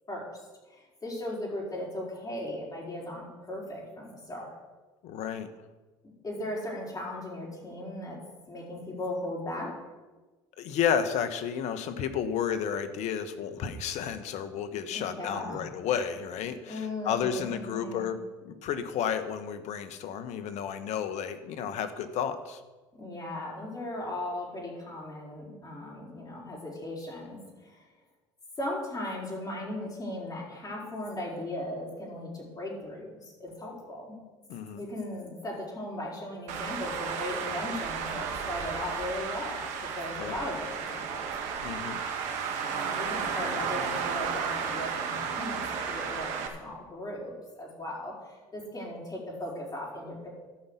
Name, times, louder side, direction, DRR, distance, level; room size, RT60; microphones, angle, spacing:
voice 1, 0.7-4.6 6.2-8.2 8.5-9.7 14.9-15.6 16.7-18.1 22.9-27.8 28.6-34.2 34.7-41.3 42.6-50.3, left 1 dB, 30° left, -4 dB, 4.9 m, -37 dB
voice 2, 5.0-5.5 10.6-18.2 18.4-22.6 34.5-34.8 40.2-40.4 41.6-42.0, left 8 dB, 65° left, 10 dB, 1.2 m, -32 dB
Traffic noise roadway noise, 36.5-46.5, right 6 dB, 65° right, 1.8 m, -33 dB
13.0 x 5.7 x 8.3 m, 1.2 s
hypercardioid pair, 75°, 13 cm